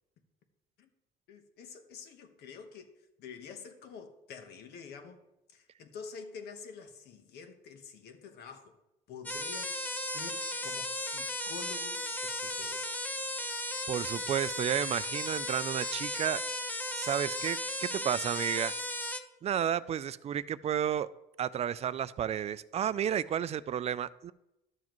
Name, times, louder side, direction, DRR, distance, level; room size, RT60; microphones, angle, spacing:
voice 1, 1.3-2.9 3.2-5.2 5.5-8.7 9.1-13.2, left 6 dB, 75° left, 7 dB, 1.2 m, -48 dB
sound 1, 9.3-19.2, left 1 dB, 10° left, 0.8 m, -35 dB
voice 2, 13.9-16.4 16.9-18.7 19.4-21.1 21.4-24.3, right 9 dB, 40° right, 16 dB, 0.4 m, -32 dB
12.0 x 7.3 x 3.0 m, 0.89 s
cardioid pair, 110°, 17 cm